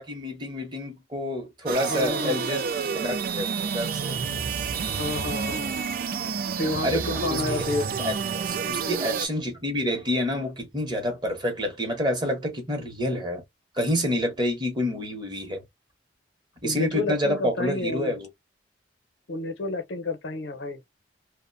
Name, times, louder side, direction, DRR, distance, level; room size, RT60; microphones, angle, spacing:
voice 1, 0.0-4.2 6.8-7.6 8.0-8.1 8.4-13.4 13.7-15.6 16.6-18.3, left 1 dB, 25° right, 0.8 m, -28 dB
sound 1, 1.7-9.3, right 6 dB, 50° right, 0.3 m, -29 dB
voice 2, 1.8-2.4 4.9-5.7 6.6-7.9 16.6-18.1 19.3-20.8, left 2 dB, 75° left, 0.7 m, -30 dB
2.5 x 2.1 x 2.5 m
head